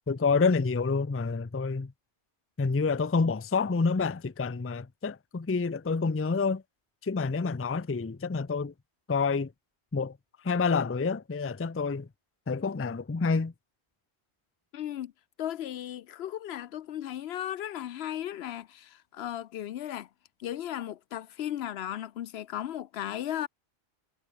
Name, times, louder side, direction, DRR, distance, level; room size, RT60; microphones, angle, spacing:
voice 1, 0.1-1.9 2.6-6.6 7.0-8.7 9.1-9.5 9.9-10.2 10.4-12.1 12.5-13.5, left 4 dB, 20° left, 0.4 m, -28 dB
voice 2, 14.7-15.1 15.4-20.1 20.4-23.5, left 11 dB, 70° left, 0.8 m, -36 dB
omnidirectional pair, 1.1 m